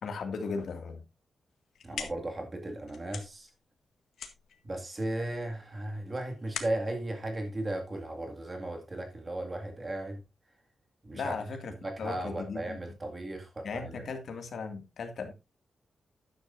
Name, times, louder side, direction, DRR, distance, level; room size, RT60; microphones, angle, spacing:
voice 1, 0.0-1.0 11.1-12.8 13.6-15.3, left 4 dB, 55° left, 2.1 m, -37 dB
sound 1, 1.5-8.4, left 7 dB, 80° left, 1.8 m, -45 dB
voice 2, 1.8-3.5 4.6-10.2 11.0-11.3 11.8-14.0, right 1 dB, 20° right, 2.0 m, -36 dB
12.5 x 10.0 x 2.6 m
wide cardioid pair, 180°, 0 cm